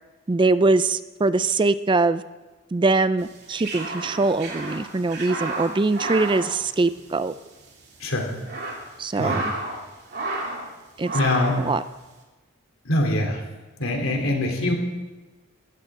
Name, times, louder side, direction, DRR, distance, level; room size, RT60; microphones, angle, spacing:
voice 1, 0.3-2.2 2.7-7.3 9.0-9.4 11.0-11.2 11.6-11.8, right 3 dB, 25° right, 14 dB, 0.3 m, -22 dB
sound 1, 3.3-7.4 7.6-7.7 8.2-9.8 10.1-10.7 11.0-11.7, right 2 dB, 50° right, 2.9 m, -31 dB
voice 2, 9.2-9.5 11.1-11.6 12.8-13.4 13.8-14.7, left 1 dB, 80° left, 1 dB, 3.3 m, -23 dB
18.5 x 14.5 x 3.7 m, 1.2 s
head